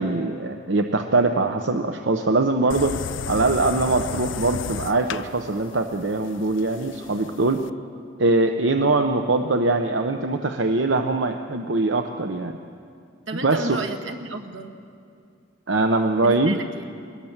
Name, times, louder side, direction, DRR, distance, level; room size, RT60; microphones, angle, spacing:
voice 1, 0.0-3.0 3.3-7.6 8.2-12.6 13.3-13.8 15.7-16.6, right 2 dB, 75° right, 6 dB, 0.9 m, -22 dB
sound 1, 2.7-7.7, left 6 dB, 85° left, 0.5 m, -33 dB
voice 2, 13.3-14.9 16.2-17.0, right 2 dB, 90° right, 6 dB, 1.8 m, -33 dB
23.5 x 20.0 x 7.3 m, 2.4 s
head